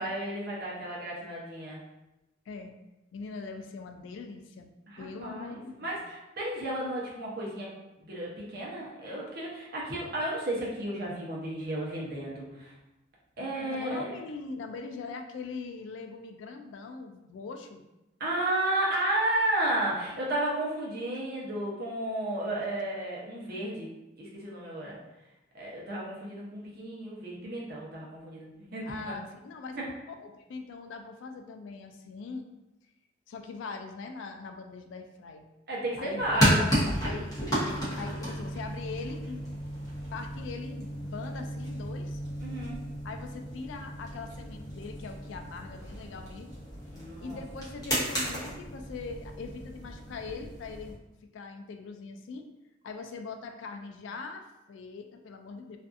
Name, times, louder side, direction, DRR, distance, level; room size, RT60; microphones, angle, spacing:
voice 1, 0.0-1.8 4.9-5.5 5.8-7.7 8.1-12.7 13.4-14.1 18.2-23.9 24.2-25.0 25.5-28.9 29.7-29.9 35.7-36.6 42.4-42.8 46.9-47.4, right 1 dB, 55° right, -4 dB, 0.7 m, -33 dB
voice 2, 3.1-6.0 13.6-17.8 22.5-22.7 28.8-29.8 30.2-32.5 33.3-35.5 36.0-39.6 40.1-42.2 43.0-46.5 47.2-51.0 51.3-52.5 52.8-55.8, left 4 dB, 70° left, 5 dB, 0.3 m, -41 dB
sound 1, 36.2-50.9, equal, 20° left, 0.8 m, -33 dB
2.5 x 2.3 x 2.4 m, 0.95 s
head